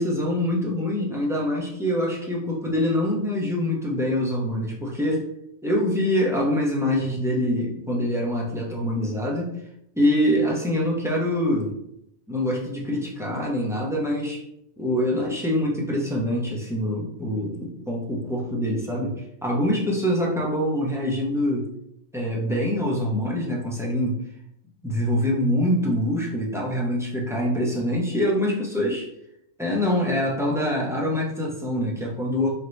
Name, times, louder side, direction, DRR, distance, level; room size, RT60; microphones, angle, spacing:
voice 1, 0.0-5.3 5.6-9.5 9.9-11.7 12.3-14.4 14.8-21.7 22.1-24.2 24.8-29.1 29.6-32.5, left 1 dB, 5° right, -4 dB, 0.5 m, -25 dB
4.0 x 3.1 x 3.2 m, 0.76 s
omnidirectional pair, 1.4 m